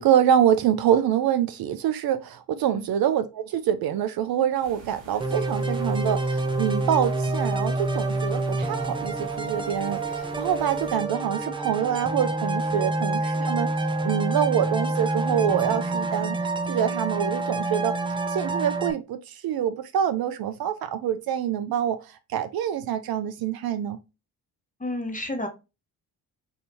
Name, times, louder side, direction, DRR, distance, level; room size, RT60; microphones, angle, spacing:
voice 1, 0.0-13.7 14.0-16.4 16.7-17.9 18.3-22.0 22.3-24.0, right 9 dB, 55° right, 0.5 m, -25 dB
sound 1, 4.6-11.0, right 1 dB, 90° right, 1.1 m, -48 dB
sound 2, 5.2-18.9, right 2 dB, 10° right, 0.6 m, -27 dB
voice 2, 24.8-25.5, left 1 dB, 20° left, 1.1 m, -31 dB
3.3 x 2.7 x 2.7 m
hypercardioid pair, 45°, 44 cm